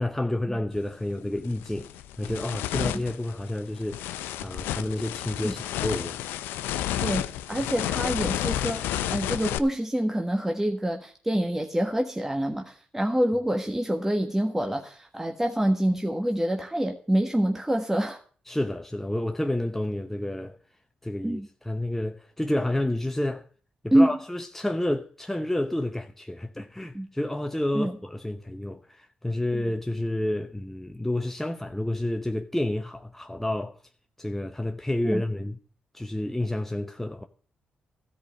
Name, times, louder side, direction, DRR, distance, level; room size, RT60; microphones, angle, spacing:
voice 1, 0.0-1.9 2.2-4.1 4.4-6.2 18.5-20.6 21.0-23.4 23.8-33.8 34.2-35.6 35.9-37.2, left 1 dB, 10° left, 0.9 m, -30 dB
sound 1, 0.7-0.9 1.4-9.6, left 12 dB, 90° left, 0.5 m, -31 dB
voice 2, 7.0-18.2 21.2-21.5 23.9-24.1 26.9-27.1 27.7-28.0 29.5-29.6 35.0-35.2, right 1 dB, 10° right, 1.4 m, -26 dB
13.5 x 5.2 x 8.8 m
supercardioid pair, 50°, 4 cm